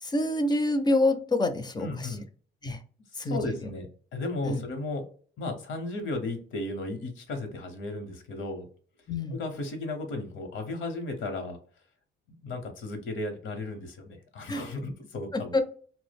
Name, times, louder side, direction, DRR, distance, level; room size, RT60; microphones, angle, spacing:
voice 1, 0.0-2.1 2.6-2.8 3.2-3.5 4.4-4.6 9.1-9.4 14.5-14.6 15.3-15.6, left 2 dB, 20° left, 8 dB, 0.4 m, -27 dB
voice 2, 1.8-2.3 3.1-5.0 5.4-8.7 9.3-11.6 12.4-15.6, left 2 dB, 75° left, 6 dB, 0.8 m, -35 dB
2.2 x 2.0 x 3.3 m, 0.44 s
cardioid pair, 90°, 20 cm